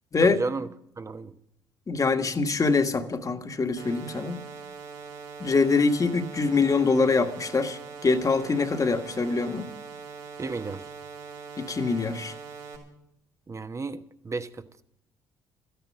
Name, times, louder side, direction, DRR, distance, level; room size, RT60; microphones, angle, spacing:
voice 1, 0.2-0.7 1.0-1.3 10.4-10.9 13.5-14.8, right 3 dB, 30° right, 1.0 m, -33 dB
voice 2, 1.9-4.4 5.4-9.7 11.6-12.3, left 4 dB, 35° left, 1.5 m, -24 dB
sound 1, 3.8-12.8, right 5 dB, 80° right, 4.7 m, -42 dB
13.5 x 10.0 x 8.7 m
hypercardioid pair, 60°, 10 cm